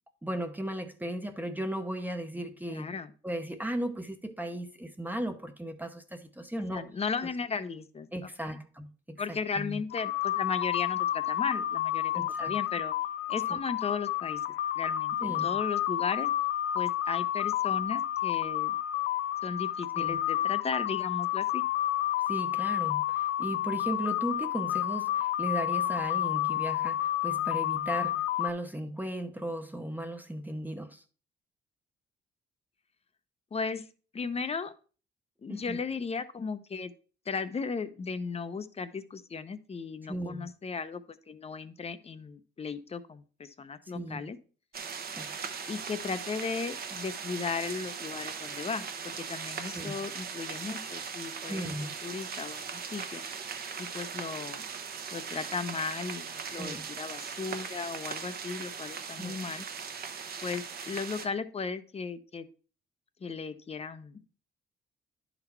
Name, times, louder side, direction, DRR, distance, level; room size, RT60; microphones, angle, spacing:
voice 1, 0.2-2.9 3.2-6.8 8.1-9.8 12.1-12.5 13.5-13.6 15.2-15.5 20.0-20.2 22.3-31.0 35.5-35.8 40.1-40.5 43.9-44.2 45.1-45.4 49.7-49.9 51.4-51.9 56.5-56.9 59.2-59.3, right 1 dB, 10° right, 0.8 m, -36 dB
voice 2, 2.7-3.1 6.6-8.1 8.4-8.6 9.2-12.9 13.3-14.4 14.8-16.3 16.7-18.8 19.4-21.7 33.5-33.9 34.1-34.7 35.4-36.9 37.3-44.4 45.7-53.2 53.8-54.6 55.1-59.7 60.4-62.5 63.2-64.2, left 5 dB, 30° left, 0.7 m, -36 dB
sound 1, 9.9-28.5, left 13 dB, 85° left, 0.4 m, -30 dB
sound 2, 44.7-61.3, right 6 dB, 50° right, 1.0 m, -39 dB
10.5 x 4.0 x 4.4 m
cardioid pair, 90°, 20 cm